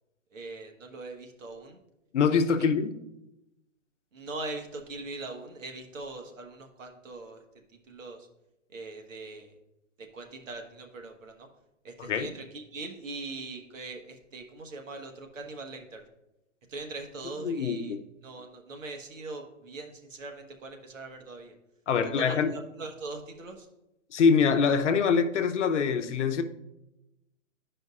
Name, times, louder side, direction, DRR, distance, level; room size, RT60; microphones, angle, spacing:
voice 1, 0.3-1.8 4.1-7.4 7.7-8.3 8.7-9.5 10.0-11.5 11.8-16.0 16.7-17.9 18.2-21.5 22.0-23.7, right 3 dB, 80° right, 1.3 m, -41 dB
voice 2, 2.1-2.9 12.0-12.3 17.4-18.0 21.9-22.6 24.1-26.4, left 6 dB, 65° left, 0.8 m, -24 dB
12.0 x 5.1 x 2.4 m
hypercardioid pair, 160°, 38 cm